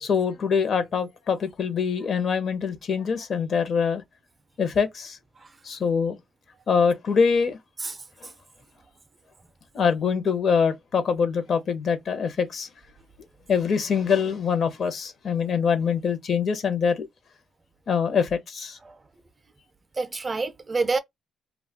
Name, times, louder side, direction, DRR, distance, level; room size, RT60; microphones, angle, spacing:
voice 1, 0.0-4.0 4.6-5.2 5.6-6.2 6.7-7.6 9.7-12.7 13.5-17.1 17.9-18.8, left 6 dB, 55° left, 0.7 m, -24 dB
voice 2, 20.0-21.0, right 3 dB, 30° right, 0.4 m, -27 dB
2.3 x 2.2 x 3.5 m
cardioid pair, 90°, 0 cm